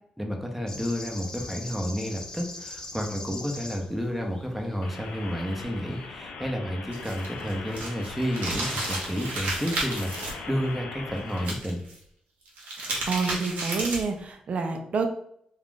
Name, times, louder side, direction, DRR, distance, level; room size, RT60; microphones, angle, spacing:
voice 1, 0.2-11.8, equal, 5° right, 2 dB, 0.8 m, -31 dB
sound 1, 0.7-6.1, left 2 dB, 25° left, 0.6 m, -42 dB
sound 2, 4.8-11.5, left 4 dB, 80° left, 0.5 m, -40 dB
sound 3, 6.9-10.3 11.4-11.9 12.4-14.2, right 2 dB, 80° right, 0.9 m, -32 dB
voice 2, 12.8-15.1, right 4 dB, 55° right, 5 dB, 0.6 m, -28 dB
2.5 x 2.4 x 3.6 m, 0.68 s
supercardioid pair, 60°, 3 cm